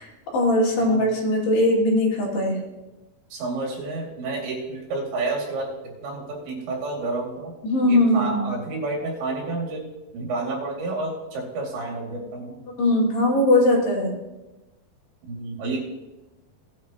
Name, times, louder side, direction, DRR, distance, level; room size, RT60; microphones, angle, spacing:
voice 1, 0.3-2.6 7.6-8.4 12.8-14.2, left 1 dB, 65° left, -4 dB, 4.7 m, -20 dB
voice 2, 3.3-5.7 6.0-7.5 7.9-9.9 10.1-12.7 15.3-15.9, right 3 dB, 80° right, -1 dB, 4.7 m, -30 dB
18.5 x 9.7 x 3.0 m, 1.0 s
omnidirectional pair, 5.1 m